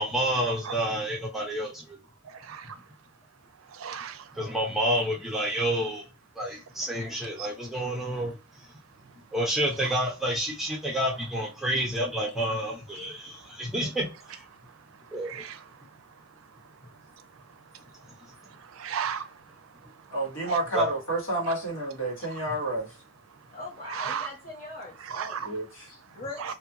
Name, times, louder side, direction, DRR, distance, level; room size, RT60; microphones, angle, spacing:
voice 1, 0.0-2.0 4.3-6.1 6.4-8.4 9.3-14.4 15.1-15.4 20.7-20.9, right 1 dB, ahead, 0.8 m, -29 dB
voice 2, 2.2-2.8 3.6-4.4 6.8-6.9 7.4-7.5 9.8-9.9 13.4-13.6 14.7-16.8 17.1-20.6 21.5-21.6 22.2-22.4 23.3-23.4 23.8-24.3 25.0-25.6 26.1-26.5, right 7 dB, 85° right, 0.4 m, -39 dB
voice 3, 20.1-22.9 25.4-25.8, right 1 dB, 85° left, 1.5 m, -29 dB
voice 4, 23.5-25.5 25.9-26.4, left 2 dB, 45° left, 1.3 m, -41 dB
2.6 x 2.4 x 2.6 m
head